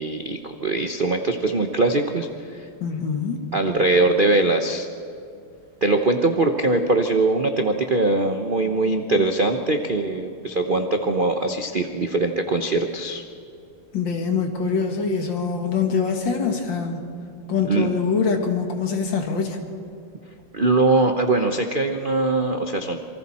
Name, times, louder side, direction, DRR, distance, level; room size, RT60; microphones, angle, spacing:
voice 1, 0.0-2.7 3.5-4.9 5.8-13.2 17.7-17.9 20.5-23.0, right 2 dB, 60° right, 5 dB, 0.5 m, -22 dB
voice 2, 2.8-3.4 13.9-17.1 17.5-19.6, left 5 dB, 60° left, 4 dB, 2.4 m, -24 dB
27.0 x 24.0 x 4.3 m, 2.4 s
omnidirectional pair, 2.4 m